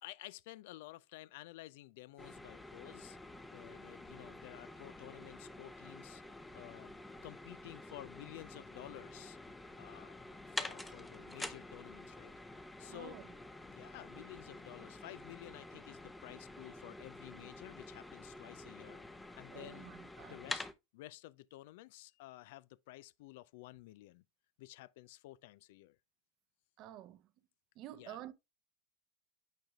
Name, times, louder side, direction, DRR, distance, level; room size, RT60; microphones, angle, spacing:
voice 1, 0.0-3.2 3.5-6.2 6.5-6.9 7.2-9.4 9.8-10.1 10.5-12.3 12.8-13.2 13.7-19.9 20.3-20.7 20.9-24.2 24.6-26.0 28.0-28.2, left 17 dB, 65° left, 0.3 m, -52 dB
sound 1, 2.2-20.7, left 2 dB, 10° left, 0.7 m, -48 dB
voice 2, 12.9-13.3 19.5-20.4 26.8-27.3 27.8-28.3, right 13 dB, 50° right, 0.7 m, -50 dB
9.0 x 5.1 x 2.3 m
hypercardioid pair, 85°, 0 cm